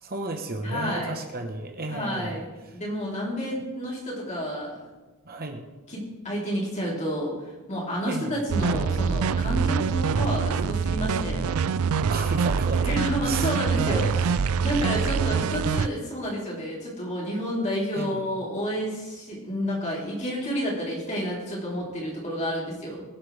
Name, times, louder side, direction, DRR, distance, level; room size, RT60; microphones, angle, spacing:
voice 1, 0.0-2.4 5.2-5.6 8.1-8.4 12.1-13.0 13.2-13.5 13.8-14.3 14.9-15.3 17.9-18.4, right 2 dB, 45° right, 4 dB, 1.2 m, -33 dB
voice 2, 0.6-1.1 1.9-4.8 5.9-7.4 7.7-11.4 12.8-14.1 14.6-23.0, equal, 35° left, -4 dB, 3.7 m, -30 dB
sound 1, 8.5-15.9, right 6 dB, 75° right, 0.4 m, -25 dB
22.5 x 7.8 x 3.4 m, 1.2 s
head